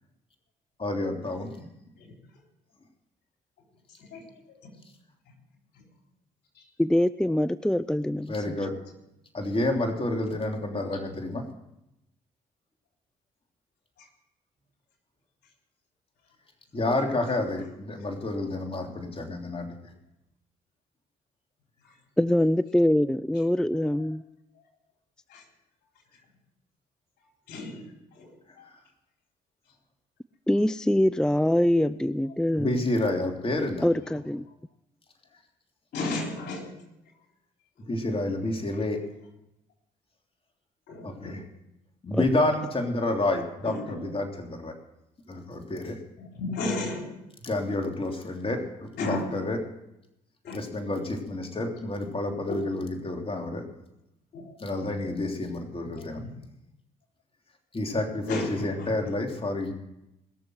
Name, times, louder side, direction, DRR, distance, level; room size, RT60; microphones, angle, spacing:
voice 1, 0.8-1.7 8.3-8.7 9.3-11.4 16.7-19.7 32.6-33.8 37.9-39.0 41.0-41.4 42.0-44.7 45.3-46.0 47.4-49.6 50.5-53.6 54.6-56.2 57.7-59.7, left 2 dB, 35° left, 3 dB, 3.3 m, -29 dB
voice 2, 4.0-4.6 5.8-5.9 6.6-6.7 14.0-14.1 21.8-21.9 23.7-24.1 25.3-25.4 27.5-27.8 28.1-28.7 35.9-36.7 40.9-41.4 43.6-44.0 44.4-44.5 46.2-47.1 49.0-49.3 50.4-50.6 52.5-52.6 54.3-54.6 55.9-56.3 58.3-59.1, left 2 dB, 75° left, 1 dB, 3.8 m, -34 dB
voice 3, 6.8-8.3 22.2-24.2 30.5-32.8 33.8-34.4 42.1-42.3, left 1 dB, 5° left, 16 dB, 0.5 m, -24 dB
21.0 x 7.0 x 7.8 m, 0.87 s
supercardioid pair, 60°, 17 cm